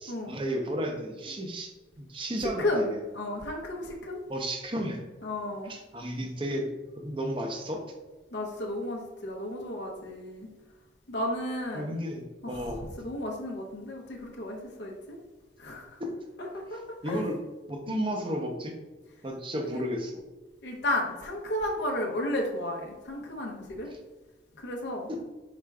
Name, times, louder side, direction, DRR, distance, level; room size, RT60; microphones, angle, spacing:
voice 1, 0.0-1.7 2.0-3.0 4.3-5.2 5.4-7.8 11.7-12.2 12.5-12.9 16.0-16.1 17.0-17.4 17.7-18.7 19.2-20.2 25.1-25.2, equal, 25° right, 3 dB, 0.6 m, -33 dB
voice 2, 2.6-4.2 5.2-5.7 8.3-10.5 11.1-12.0 12.4-15.2 15.6-16.0 16.4-17.2 17.9-18.0 19.7-19.8 20.6-23.9 24.6-25.1, left 1 dB, 65° left, 0 dB, 0.7 m, -33 dB
4.9 x 4.3 x 2.3 m, 1.2 s
head